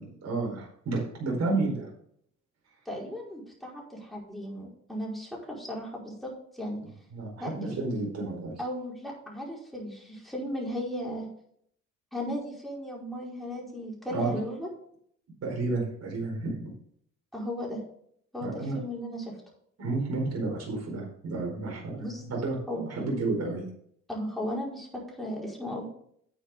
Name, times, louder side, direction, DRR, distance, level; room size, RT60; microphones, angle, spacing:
voice 1, 0.0-1.9 7.1-8.6 14.1-14.4 15.4-16.7 18.4-18.8 19.8-23.7, right 3 dB, 55° right, -1 dB, 4.7 m, -31 dB
voice 2, 2.8-6.8 7.4-7.8 8.6-11.3 12.1-14.7 17.3-17.8 18.3-19.3 22.0-22.2 22.7-22.8 24.1-25.9, equal, ahead, -2 dB, 4.8 m, -36 dB
9.8 x 9.1 x 3.8 m, 0.66 s
cardioid pair, 90°, 30 cm